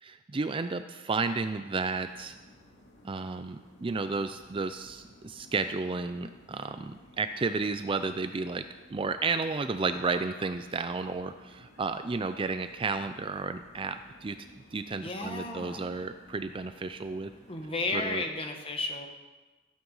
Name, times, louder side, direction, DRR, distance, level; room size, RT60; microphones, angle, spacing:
voice 1, 0.0-2.4 3.0-14.5 14.7-17.3 17.9-18.2, right 4 dB, 25° right, 9 dB, 0.4 m, -32 dB
sound 1, 1.8-18.3, left 1 dB, 60° left, 2.8 m, -56 dB
voice 2, 15.0-15.9 17.5-19.1, left 2 dB, 30° left, 4 dB, 1.6 m, -33 dB
16.0 x 8.9 x 5.6 m, 1.2 s
head